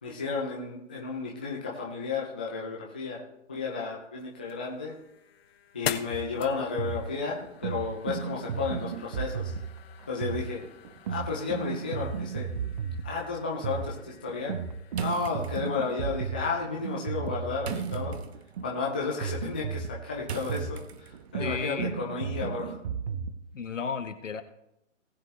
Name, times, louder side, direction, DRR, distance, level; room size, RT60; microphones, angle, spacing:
voice 1, 0.0-3.2 3.5-4.9 5.7-9.5 10.1-10.6 11.1-12.5 13.0-14.5 15.0-18.2 18.6-22.8, left 4 dB, 10° left, -3 dB, 0.4 m, -33 dB
sound 1, 4.2-15.1, left 8 dB, 50° left, 1.0 m, -44 dB
sound 2, 6.1-23.4, right 6 dB, 30° right, 0.8 m, -35 dB
sound 3, 14.9-21.4, right 7 dB, 55° right, 0.9 m, -43 dB
voice 2, 21.4-22.0 23.5-24.4, left 6 dB, 70° left, 8 dB, 1.5 m, -33 dB
19.0 x 7.7 x 3.2 m, 0.82 s
figure-of-eight pair, 140°, 38 cm